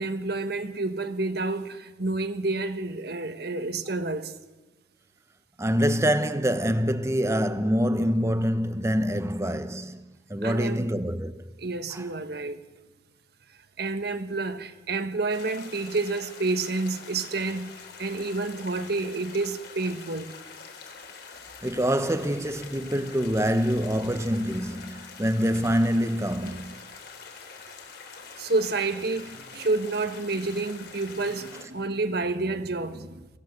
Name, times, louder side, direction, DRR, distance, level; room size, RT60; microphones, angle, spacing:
voice 1, 0.0-4.4 10.4-10.8 11.6-12.6 13.8-20.3 26.4-26.6 28.4-33.3, right 3 dB, 60° right, 1.4 m, -29 dB
voice 2, 5.6-11.5 11.9-12.0 21.6-26.8, equal, 15° right, 1.0 m, -25 dB
sound 1, 15.3-31.6, left 5 dB, 60° left, 3.9 m, -45 dB
25.0 x 16.5 x 8.1 m
head